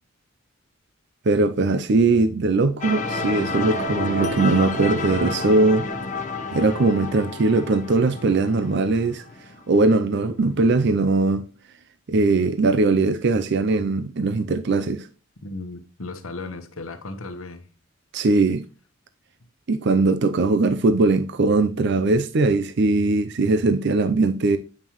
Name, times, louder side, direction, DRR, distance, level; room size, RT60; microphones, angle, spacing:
voice 1, 1.3-5.9 6.5-9.2 9.7-11.5 12.1-15.1 18.1-18.6 19.7-24.6, right 3 dB, 55° right, 0.5 m, -20 dB
sound 1, 2.8-9.6, left 3 dB, 35° left, 0.9 m, -30 dB
voice 2, 15.4-17.7, left 3 dB, 75° left, 1.2 m, -35 dB
8.8 x 5.5 x 3.0 m
head